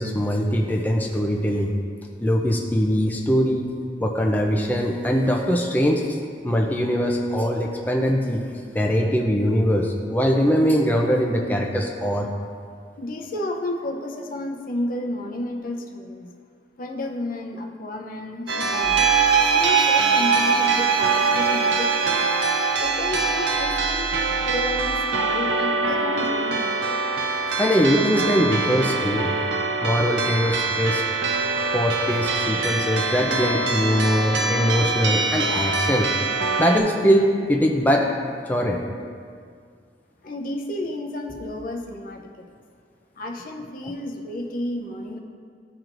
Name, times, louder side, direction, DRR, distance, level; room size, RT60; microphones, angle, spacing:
voice 1, 0.0-1.7 2.2-3.7 4.0-6.2 6.4-8.4 8.7-12.3 27.6-29.3 29.8-31.0 31.7-36.1 36.6-38.1 38.5-38.8, equal, 10° left, 0 dB, 0.4 m, -22 dB
voice 2, 13.0-16.3 16.8-19.1 19.5-22.3 22.8-26.8 40.2-42.5 43.2-45.2, left 1 dB, 55° left, 2 dB, 0.6 m, -31 dB
sound 1, 18.5-36.8, right 3 dB, 85° right, 0.6 m, -24 dB
sound 2, 18.7-24.0, right 8 dB, 35° right, 0.6 m, -22 dB
sound 3, 18.8-19.3 22.8-24.9, right 1 dB, 50° right, 1.0 m, -38 dB
13.0 x 4.5 x 2.5 m, 2.2 s
head